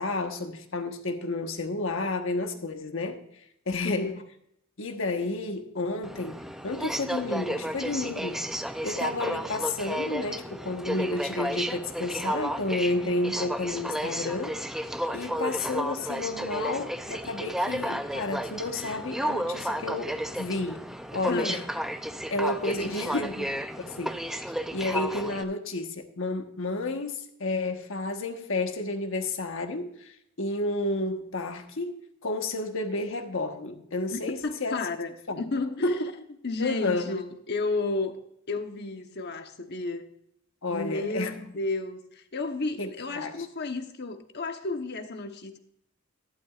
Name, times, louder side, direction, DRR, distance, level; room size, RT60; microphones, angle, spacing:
voice 1, 0.0-3.2 3.7-4.1 4.8-8.4 8.8-14.6 15.1-20.8 21.1-21.6 22.3-23.5 23.8-31.9 32.2-34.8 35.3-35.4 35.8-36.1 36.6-37.1 40.6-41.3 42.8-42.9 43.1-43.4, left 2 dB, 65° left, 1.3 m, -31 dB
voice 2, 3.8-4.2 17.7-17.8 21.3-21.7 22.8-23.2 34.1-36.0 36.4-38.2 38.5-40.0 40.7-45.6, left 3 dB, 50° left, 1.1 m, -32 dB
Aircraft, 6.0-25.4, equal, ahead, 0.5 m, -33 dB
12.0 x 11.5 x 2.5 m
head